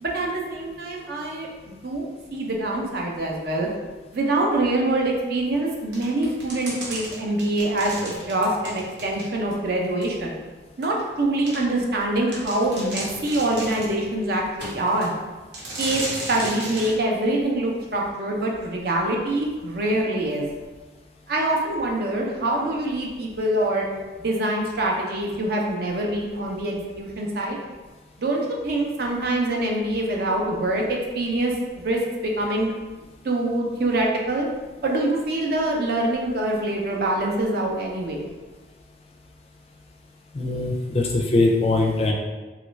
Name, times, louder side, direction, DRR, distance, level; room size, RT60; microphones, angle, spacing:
voice 1, 0.0-2.0 2.3-3.7 4.1-10.4 10.8-15.1 15.8-16.0 16.3-20.5 21.3-23.8 24.2-27.6 28.2-31.5 31.8-32.7 33.2-34.5 34.8-38.2, right 1 dB, 55° right, -1 dB, 0.5 m, -25 dB
sound 1, 5.9-9.6 10.0-10.1 10.8-10.9 11.5-11.6 12.0-12.1 12.3-14.0 14.6-15.1 15.5-17.0, right 1 dB, 75° right, 0.8 m, -34 dB
voice 2, 40.3-42.1, left 2 dB, 35° left, 0 dB, 0.4 m, -21 dB
3.0 x 2.4 x 3.1 m, 1.2 s
head